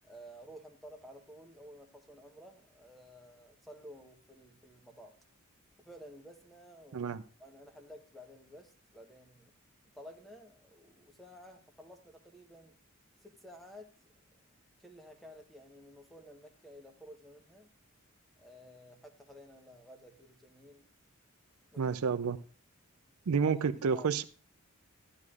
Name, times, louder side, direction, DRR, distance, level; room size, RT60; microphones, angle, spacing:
voice 1, 0.0-5.2 5.8-7.1 7.4-9.5 9.9-12.8 13.2-13.9 14.8-17.7 18.4-20.8 21.7-22.0 23.4-23.5 23.9-24.1, equal, ahead, 1.0 m, -53 dB
voice 2, 21.8-22.4 23.3-24.2, right 6 dB, 70° right, 0.5 m, -30 dB
12.0 x 11.0 x 2.4 m
head